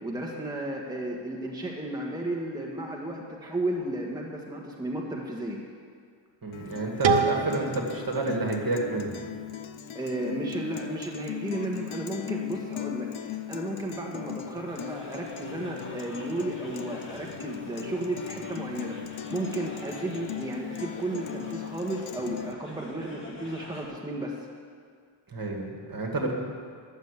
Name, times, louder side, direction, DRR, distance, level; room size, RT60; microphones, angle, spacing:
voice 1, 0.0-5.6 9.9-24.3, right 1 dB, 10° right, -2 dB, 1.4 m, -33 dB
voice 2, 6.4-9.2 25.3-26.3, right 2 dB, 45° right, 0 dB, 2.1 m, -30 dB
Guitar, 6.5-22.5, left 10 dB, 75° left, 0.7 m, -38 dB
sound 1, 7.0-9.9, right 5 dB, 70° right, 0.9 m, -29 dB
sound 2, 14.7-23.9, left 1 dB, 25° left, 2.1 m, -46 dB
11.0 x 7.3 x 8.2 m, 2.1 s
wide cardioid pair, 95°, 48 cm